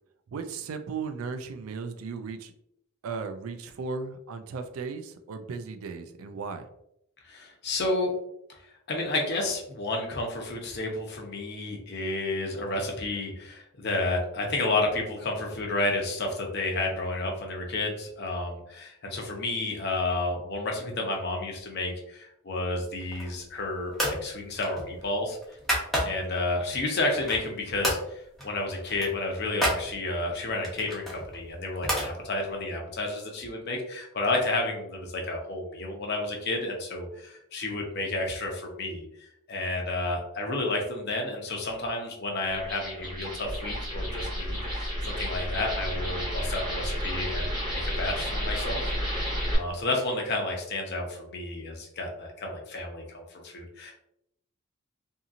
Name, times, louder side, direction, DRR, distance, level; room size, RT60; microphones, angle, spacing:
voice 1, 0.3-2.5 3.0-6.7, right 5 dB, 85° right, 8 dB, 0.4 m, -36 dB
voice 2, 7.2-8.1 8.6-25.6 26.0-48.8 49.5-53.9, left 2 dB, 50° left, 1 dB, 0.6 m, -31 dB
sound 1, 23.0-23.5 23.9-24.2 24.6-26.4 26.9-27.5 27.8-28.1 28.4-28.5 28.8-29.8 30.6-32.1, equal, ahead, 0.6 m, -30 dB
sound 2, 42.5-49.5, equal, 20° right, 0.9 m, -31 dB
2.7 x 2.7 x 2.4 m, 0.77 s
head